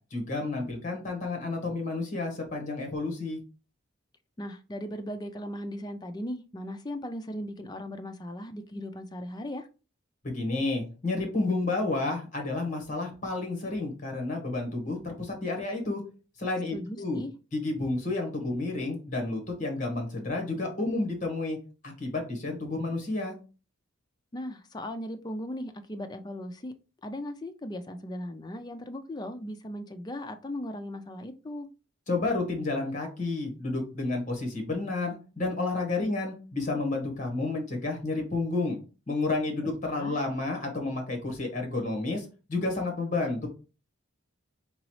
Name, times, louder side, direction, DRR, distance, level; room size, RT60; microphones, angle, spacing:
voice 1, 0.1-3.4 10.2-16.0 16.4-17.2 17.5-21.6 21.8-23.3 32.1-38.8 39.1-43.5, left 2 dB, 35° left, 1.3 m, -31 dB
voice 2, 4.4-9.7 16.7-17.3 24.3-26.7 27.0-31.7 39.6-40.2, left 1 dB, 20° left, 0.3 m, -38 dB
4.0 x 3.9 x 3.1 m
head